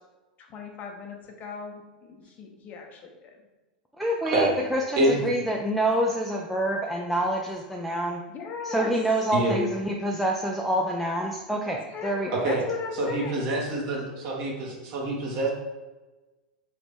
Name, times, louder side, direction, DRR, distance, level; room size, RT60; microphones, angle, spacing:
voice 1, 0.4-3.3 8.3-8.9 11.7-13.3, left 5 dB, 35° left, 2 dB, 0.7 m, -38 dB
voice 2, 4.0-8.2 8.6-12.3, right 1 dB, ahead, -2 dB, 0.4 m, -27 dB
voice 3, 5.0-5.3 9.3-9.5 12.4-12.6 13.0-15.5, right 2 dB, 45° right, -2 dB, 1.3 m, -26 dB
3.8 x 3.1 x 3.4 m, 1.2 s
figure-of-eight pair, 90°, 5 cm